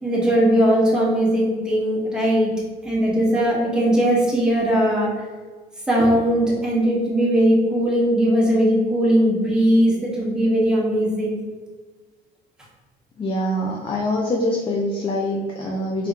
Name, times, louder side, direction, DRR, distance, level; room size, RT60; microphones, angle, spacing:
voice 1, 0.0-2.5 2.8-5.1 5.9-11.4, equal, 5° right, -5 dB, 1.2 m, -19 dB
voice 2, 13.2-16.1, left 1 dB, 30° left, -1 dB, 0.5 m, -24 dB
3.6 x 3.5 x 2.9 m, 1.4 s
cardioid pair, 110°, 17 cm